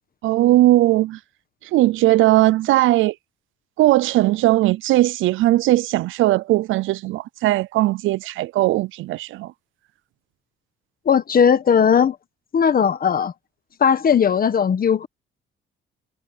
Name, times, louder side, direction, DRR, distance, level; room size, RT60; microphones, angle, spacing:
voice 1, 0.2-1.2 1.7-3.1 3.8-9.5, right 16 dB, 80° right, 0.5 m, -18 dB
voice 2, 11.0-12.2 12.5-13.3 13.8-15.1, left 7 dB, 45° left, 1.4 m, -17 dB
cardioid pair, 90°, 20 cm